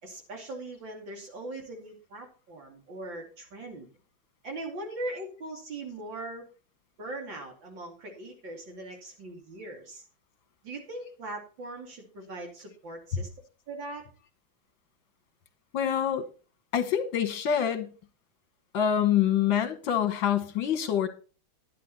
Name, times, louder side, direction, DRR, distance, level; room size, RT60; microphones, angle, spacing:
voice 1, 0.0-3.9 4.4-6.5 7.0-10.0 10.6-13.3 13.7-14.0, right 2 dB, 65° right, 1 dB, 3.3 m, -40 dB
voice 2, 15.7-16.2 16.7-17.9 18.7-21.1, left 9 dB, 70° left, 9 dB, 1.9 m, -26 dB
11.5 x 9.3 x 4.1 m, 0.35 s
omnidirectional pair, 2.3 m